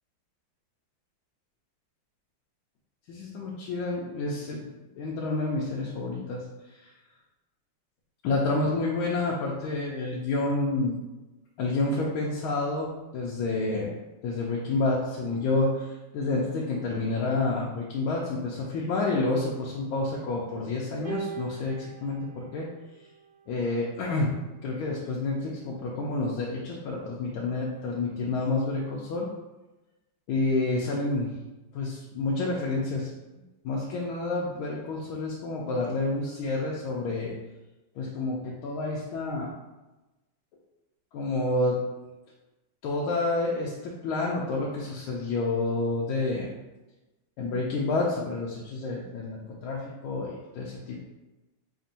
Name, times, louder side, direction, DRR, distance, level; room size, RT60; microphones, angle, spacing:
voice 1, 3.1-4.7 5.0-6.4 6.7-6.9 8.2-11.0 11.6-13.9 14.2-22.7 23.5-24.3 24.6-29.3 30.3-31.3 31.7-33.1 33.6-37.3 37.9-39.6 41.1-41.8 42.8-46.5 47.4-51.0, left 2 dB, 85° left, -3 dB, 1.4 m, -29 dB
sound 1, 21.1-23.5 24.5-24.7, right 6 dB, 70° right, 1.1 m, -41 dB
3.6 x 2.5 x 4.1 m, 1.1 s
omnidirectional pair, 2.2 m